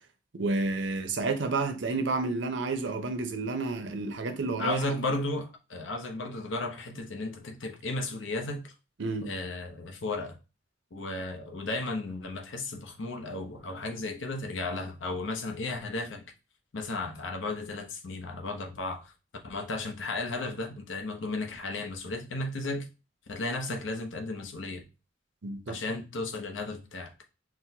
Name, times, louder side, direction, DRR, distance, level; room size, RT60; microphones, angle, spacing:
voice 1, 0.3-4.8 9.0-9.3 25.4-25.8, right 3 dB, 70° right, 0.6 m, -30 dB
voice 2, 4.6-8.7 9.2-10.4 10.9-16.2 16.7-19.1 19.4-22.9 23.3-24.8 25.7-27.1, left 2 dB, 85° left, 0.7 m, -34 dB
6.0 x 2.1 x 2.8 m
head